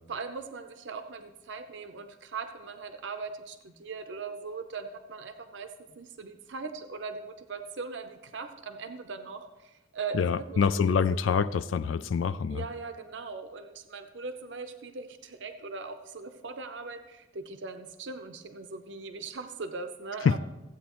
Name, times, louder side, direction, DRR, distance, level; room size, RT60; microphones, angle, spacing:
voice 1, 0.1-11.5 12.5-20.4, right 4 dB, 65° right, 8 dB, 0.6 m, -40 dB
voice 2, 10.1-12.6 20.2-20.3, left 6 dB, 85° left, 13 dB, 0.3 m, -26 dB
15.0 x 8.4 x 3.0 m, 1.0 s
head